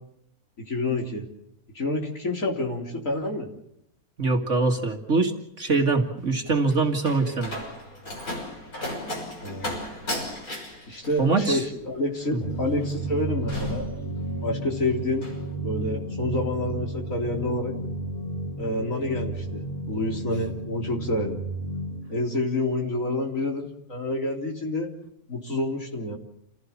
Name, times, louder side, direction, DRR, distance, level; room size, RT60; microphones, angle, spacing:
voice 1, 0.6-1.3 1.7-3.5 9.4-9.8 10.9-13.9 14.4-15.2 15.6-17.8 18.6-21.4 22.1-24.9 25.3-26.2, left 2 dB, 65° left, 1 dB, 4.2 m, -28 dB
voice 2, 4.2-7.5 11.2-11.6, right 3 dB, 55° right, 3 dB, 2.3 m, -23 dB
Slam, 6.2-14.6 14.9-15.4, left 1 dB, 80° left, 6.6 m, -36 dB
sound 1, 12.4-22.0, right 2 dB, 40° left, 4.3 m, -32 dB
29.0 x 16.5 x 7.2 m, 0.77 s
omnidirectional pair, 1.5 m